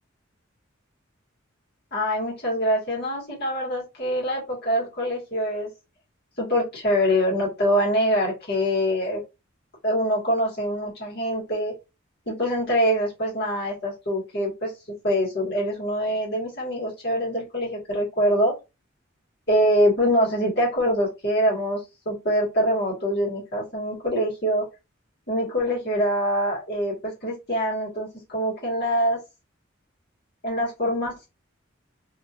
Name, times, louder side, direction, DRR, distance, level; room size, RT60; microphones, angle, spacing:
voice 1, 1.9-5.7 6.4-9.2 9.8-11.7 12.3-14.7 15.0-18.6 19.5-21.8 22.1-24.7 25.3-29.2 30.4-31.3, equal, 55° left, -5 dB, 1.8 m, -24 dB
3.1 x 2.9 x 2.5 m, 0.26 s
head